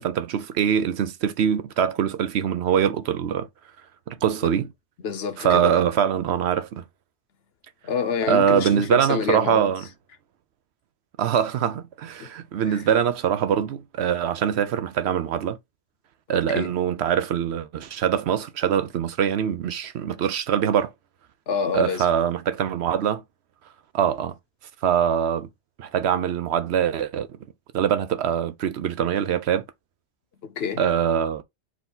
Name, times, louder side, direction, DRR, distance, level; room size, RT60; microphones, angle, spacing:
voice 1, 0.0-3.5 4.1-4.7 5.4-6.8 8.3-9.8 11.2-15.6 16.3-20.9 21.7-23.2 23.9-24.3 24.8-25.5 25.8-27.3 27.7-29.6 30.8-31.4, right 8 dB, 70° right, 0.8 m, -23 dB
voice 2, 5.0-5.8 7.8-9.6 12.2-12.3 12.7-12.8 16.3-16.7 21.5-22.1 30.4-30.8, left 6 dB, 65° left, 0.9 m, -28 dB
4.6 x 2.8 x 3.7 m
omnidirectional pair, 1.2 m